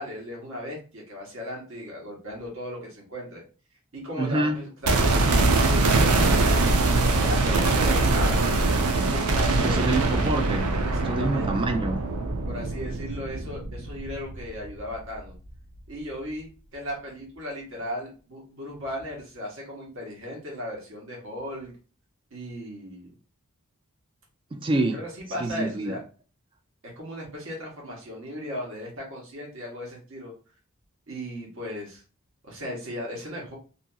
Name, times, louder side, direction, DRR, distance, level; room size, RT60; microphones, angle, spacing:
voice 1, 0.0-3.4 3.9-6.8 7.2-8.4 9.1-9.9 10.8-11.7 12.4-15.3 15.9-21.7 22.3-23.1 24.9-26.0 27.0-30.3 31.1-32.0 32.4-33.6, left 1 dB, 60° right, -2 dB, 1.1 m, -36 dB
voice 2, 4.2-4.6 9.6-10.7 11.1-12.0 24.5-25.0 25.4-25.9, right 2 dB, 25° right, 6 dB, 0.3 m, -26 dB
sound 1, 4.8-14.9 15.1-15.2, right 2 dB, 80° right, 0.5 m, -23 dB
2.7 x 2.7 x 2.3 m, 0.36 s
head